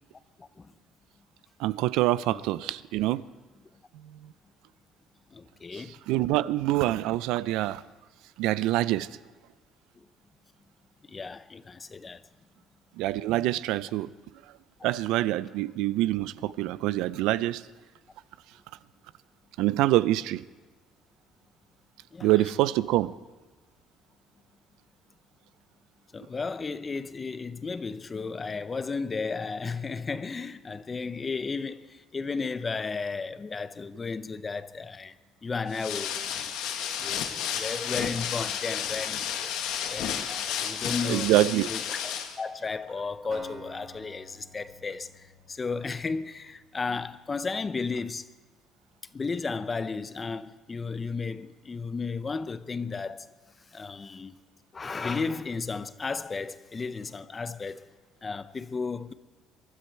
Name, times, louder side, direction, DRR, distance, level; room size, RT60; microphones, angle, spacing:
voice 1, 1.6-3.2 5.7-7.8 8.4-9.1 13.0-14.1 14.8-17.6 19.6-20.5 22.2-23.1 41.1-41.7, right 16 dB, 85° right, 0.4 m, -25 dB
voice 2, 5.3-6.0 11.1-12.2 22.1-22.3 26.1-35.1 35.4-36.5 37.0-39.6 39.9-41.3 41.7-48.3 49.1-53.3 53.7-54.3 54.7-57.9 58.2-59.1, left 4 dB, 20° left, 0.5 m, -34 dB
sound 1, 35.7-42.4, left 9 dB, 85° left, 1.4 m, -32 dB
Acoustic guitar, 43.3-47.2, right 2 dB, 50° right, 4.3 m, -50 dB
23.5 x 12.5 x 4.5 m
cardioid pair, 150°, 0 cm